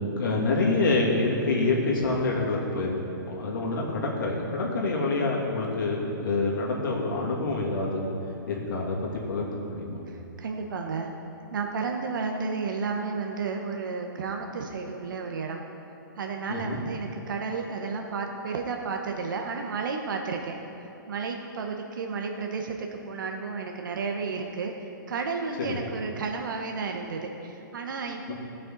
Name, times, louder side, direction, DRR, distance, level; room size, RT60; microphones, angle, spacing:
voice 1, 0.2-2.9 3.3-8.0 8.5-9.0 9.3-10.0 16.5-16.8 25.7-25.8 28.3-28.4, left 3 dB, 70° left, -3 dB, 2.3 m, -27 dB
voice 2, 10.1-11.1 11.5-15.6 16.2-20.6 21.1-24.7 25.1-28.3, right 4 dB, 70° right, 3 dB, 0.9 m, -32 dB
17.0 x 5.9 x 3.8 m, 2.9 s
hypercardioid pair, 170°, 11 cm